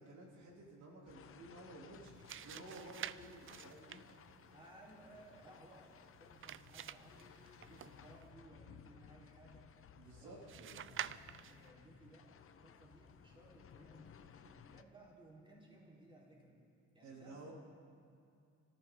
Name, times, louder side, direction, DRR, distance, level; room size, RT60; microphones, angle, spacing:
voice 1, 0.0-2.1 2.4-4.0 10.0-10.9 17.0-17.5, right 2 dB, 70° right, -2 dB, 3.3 m, -54 dB
sound 1, 1.1-14.8, left 7 dB, 45° left, 0.8 m, -60 dB
sound 2, 2.0-8.3 10.5-11.7, right 10 dB, 45° right, 0.4 m, -49 dB
voice 2, 4.5-7.3 7.6-9.7 10.0-12.3 12.6-16.6 16.9-17.5, right 1 dB, 15° right, -4 dB, 4.3 m, -61 dB
25.5 x 14.5 x 3.9 m, 2.5 s
cardioid pair, 90°, 30 cm